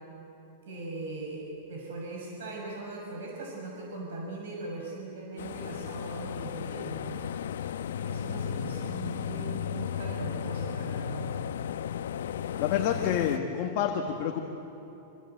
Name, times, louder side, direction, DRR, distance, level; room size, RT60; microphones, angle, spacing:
voice 1, 0.7-7.2 8.0-11.3, right 3 dB, 70° right, -1 dB, 6.1 m, -40 dB
sound 1, 5.4-13.4, left 8 dB, 85° left, 0.8 m, -34 dB
voice 2, 12.6-14.5, left 9 dB, 35° left, 2 dB, 1.6 m, -28 dB
28.0 x 26.5 x 7.9 m, 2.9 s
supercardioid pair, 175°, 0 cm